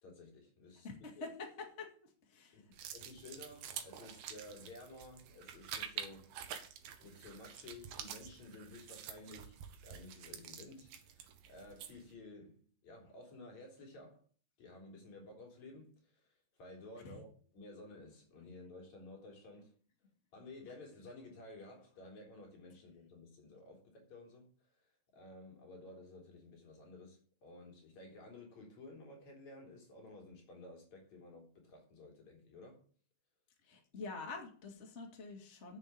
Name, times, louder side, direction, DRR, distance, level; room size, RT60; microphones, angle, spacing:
voice 1, 0.0-0.9 1.2-1.3 2.5-6.4 7.0-14.2 14.6-16.3 16.6-17.3 17.5-19.8 20.3-24.5 24.8-32.8, left 2 dB, 50° left, 4.5 m, -54 dB
voice 2, 0.8-1.5 1.8-1.9 2.3-2.7 17.0-17.2 33.6-35.8, left 3 dB, 20° left, 2.4 m, -46 dB
sound 1, 2.7-12.1, right 9 dB, 75° right, 2.9 m, -48 dB
8.1 x 7.6 x 8.8 m
omnidirectional pair, 4.1 m